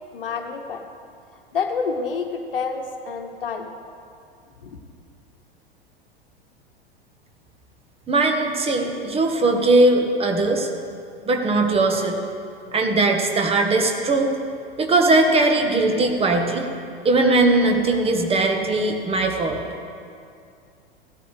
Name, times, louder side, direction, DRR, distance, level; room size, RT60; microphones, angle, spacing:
voice 1, 0.1-0.8 1.5-3.7 4.6-4.8, left 5 dB, 65° left, 5 dB, 1.1 m, -28 dB
voice 2, 8.1-10.7 11.2-12.2 12.7-14.3 14.8-16.7 17.0-19.6, right 2 dB, 20° right, 3 dB, 1.4 m, -19 dB
16.5 x 12.5 x 3.3 m, 2.4 s
figure-of-eight pair, 90°, 30 cm